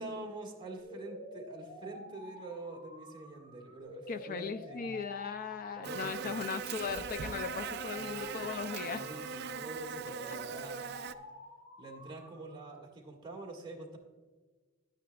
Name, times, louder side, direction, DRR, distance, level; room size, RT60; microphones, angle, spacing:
voice 1, 0.0-5.0 5.8-6.3 8.0-8.4 8.8-11.2 11.8-14.0, right 2 dB, 25° right, -1 dB, 1.8 m, -46 dB
sound 1, 0.8-12.8, left 1 dB, 70° left, 3.0 m, -49 dB
voice 2, 4.1-9.1, left 6 dB, 45° left, 11 dB, 0.3 m, -38 dB
Buzz, 5.8-11.1, right 6 dB, 55° right, 0.4 m, -40 dB
12.0 x 9.4 x 2.3 m, 1.4 s
head